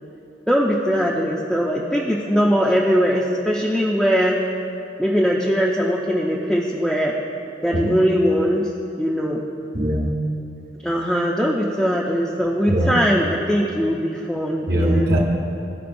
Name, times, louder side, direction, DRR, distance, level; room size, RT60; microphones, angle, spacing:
voice 1, 0.5-4.4 5.0-7.2 7.6-8.7 9.0-9.4 10.8-15.2, equal, ahead, -4 dB, 0.4 m, -20 dB
voice 2, 9.7-10.1 12.7-12.9 14.7-15.2, equal, 55° right, -2 dB, 1.0 m, -20 dB
14.0 x 4.9 x 2.6 m, 2.7 s
head